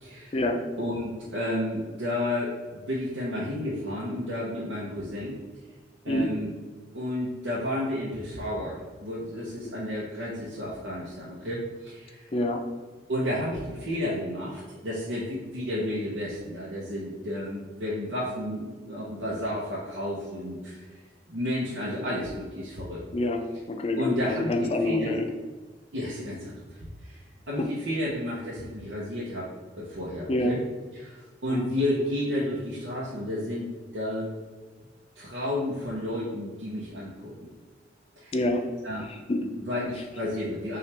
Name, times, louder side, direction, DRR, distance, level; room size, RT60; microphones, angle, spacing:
voice 1, 0.0-0.4 0.8-5.3 6.0-6.5 6.9-12.3 13.1-20.8 21.3-23.0 24.0-25.2 25.9-26.5 27.0-27.2 27.5-29.5 29.8-30.6 30.9-33.7 33.9-34.3 35.2-37.3 38.2-38.4 38.8-39.0 39.6-40.8, left 1 dB, 85° right, -6 dB, 0.8 m, -31 dB
voice 2, 23.1-25.3 30.3-30.5 31.5-32.0 38.3-38.6 39.0-39.5, left 1 dB, 35° left, 4 dB, 0.4 m, -27 dB
5.7 x 2.4 x 3.3 m, 1.4 s
head